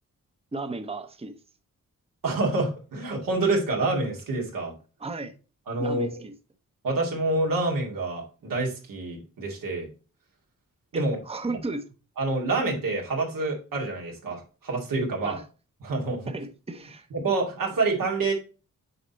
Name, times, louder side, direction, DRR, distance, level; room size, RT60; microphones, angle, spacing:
voice 1, 0.5-1.4 5.0-5.3 5.8-6.3 10.9-11.8 15.2-15.4 16.3-17.1, right 3 dB, 20° right, 0.8 m, -34 dB
voice 2, 2.2-4.7 5.7-6.2 6.8-9.9 10.9-11.2 11.5-11.6 12.2-15.4 15.8-16.3 17.1-18.3, right 3 dB, 90° right, 2.2 m, -27 dB
6.7 x 4.3 x 4.0 m
cardioid pair, 60°, 32 cm